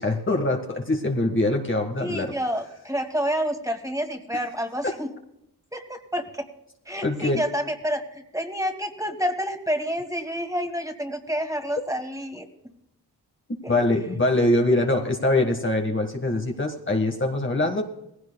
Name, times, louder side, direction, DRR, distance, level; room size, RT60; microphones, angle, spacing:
voice 1, 0.0-2.3 4.8-4.9 7.0-7.4 13.7-17.8, left 2 dB, 30° left, 2 dB, 1.6 m, -23 dB
voice 2, 2.0-5.1 5.7-6.5 6.9-12.5 13.6-13.8, equal, 10° right, 5 dB, 2.3 m, -29 dB
17.5 x 16.0 x 2.3 m, 0.80 s
cardioid pair, 50°, 42 cm